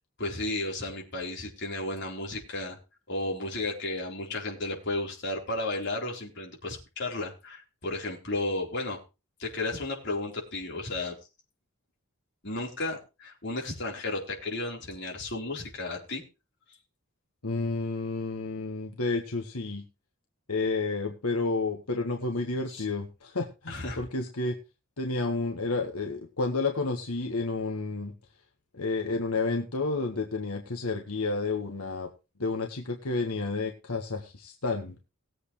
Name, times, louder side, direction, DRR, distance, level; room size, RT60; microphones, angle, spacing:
voice 1, 0.2-2.8 3.1-9.0 9.4-11.2 12.4-16.2 22.7-22.9 23.7-24.0, left 2 dB, 50° left, -1 dB, 4.3 m, -33 dB
voice 2, 17.4-19.8 20.5-24.5 25.0-28.1 28.7-32.1 32.4-35.0, left 3 dB, 90° left, 3 dB, 1.7 m, -30 dB
19.0 x 8.1 x 3.3 m, 0.29 s
head